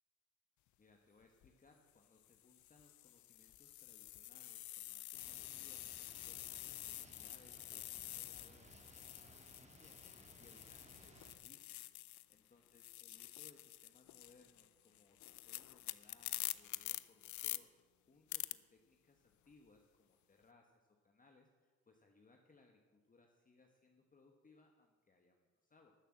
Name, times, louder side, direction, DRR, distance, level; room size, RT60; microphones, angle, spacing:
voice 1, 0.8-11.8 12.3-17.7 18.1-25.9, left 3 dB, 25° left, 3 dB, 1.2 m, -68 dB
sound 1, 1.2-1.5 2.2-12.4 12.7-17.6 18.3-18.5, left 16 dB, 75° left, 0.5 m, -48 dB
sound 2, 5.1-11.4, right 2 dB, 20° right, 1.8 m, -62 dB
13.0 x 6.6 x 7.5 m, 1.4 s
cardioid pair, 90°, 30 cm